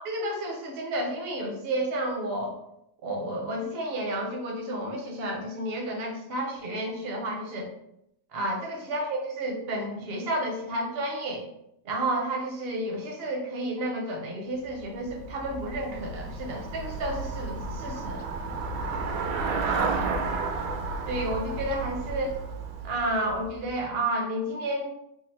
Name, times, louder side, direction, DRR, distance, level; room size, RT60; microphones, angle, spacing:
voice 1, 0.0-2.6 3.0-7.7 8.3-11.5 11.8-18.2 21.0-22.4 22.8-24.9, right 1 dB, 50° right, 1 dB, 0.8 m, -31 dB
Traffic noise roadway noise / Bicycle, 14.6-23.8, right 4 dB, 75° right, 1.1 m, -32 dB
3.8 x 2.0 x 4.3 m, 0.78 s
omnidirectional pair, 1.8 m